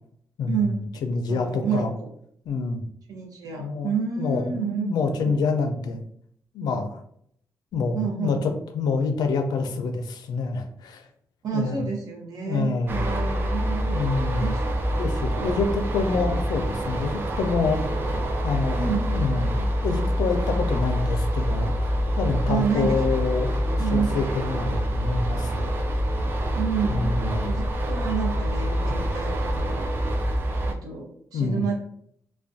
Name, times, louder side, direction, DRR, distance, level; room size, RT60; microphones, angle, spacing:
voice 1, 0.5-0.8 1.3-2.1 3.1-5.4 7.9-8.6 11.4-14.1 14.4-14.7 15.0-15.5 18.7-19.2 22.5-23.0 23.8-24.2 26.5-27.2 27.5-29.8 30.7-31.8, right 6 dB, 65° right, 0 dB, 0.7 m, -29 dB
voice 2, 1.0-1.9 2.5-2.8 3.6-3.9 4.2-6.0 6.5-7.0 7.7-11.1 11.5-11.8 12.4-13.0 13.9-14.5 15.0-17.8 18.4-21.9 22.2-25.7 26.9-27.5 31.3-31.6, left 4 dB, 90° left, 6 dB, 0.4 m, -27 dB
sound 1, 12.9-30.7, equal, 35° right, 0.3 m, -26 dB
2.4 x 2.1 x 2.5 m, 0.67 s
wide cardioid pair, 150°, 7 cm